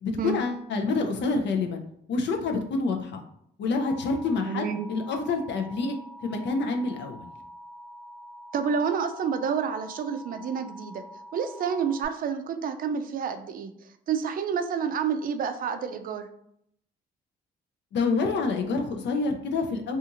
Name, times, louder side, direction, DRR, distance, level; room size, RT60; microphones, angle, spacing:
voice 1, 0.0-1.8 2.1-3.2 3.6-6.0 6.2-7.3 17.9-20.0, left 3 dB, 65° left, 4 dB, 0.5 m, -27 dB
Alarm, 3.9-12.1, equal, 10° left, 0.5 m, -46 dB
voice 2, 4.5-4.9 8.5-11.0 11.3-13.7 14.1-16.3, right 6 dB, 45° right, 8 dB, 0.4 m, -29 dB
2.5 x 2.4 x 2.8 m, 0.70 s
cardioid pair, 90°, 20 cm